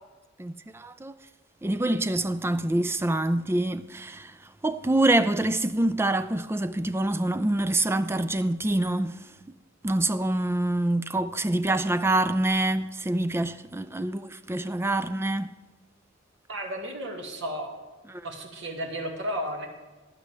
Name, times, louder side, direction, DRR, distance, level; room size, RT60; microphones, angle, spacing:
voice 1, 0.4-1.2 1.6-4.3 4.6-9.2 9.8-15.5 18.1-18.3, right 1 dB, 10° right, 0.4 m, -26 dB
voice 2, 16.5-17.7 18.2-19.7, equal, 65° right, 2.0 m, -33 dB
16.0 x 11.0 x 3.4 m
head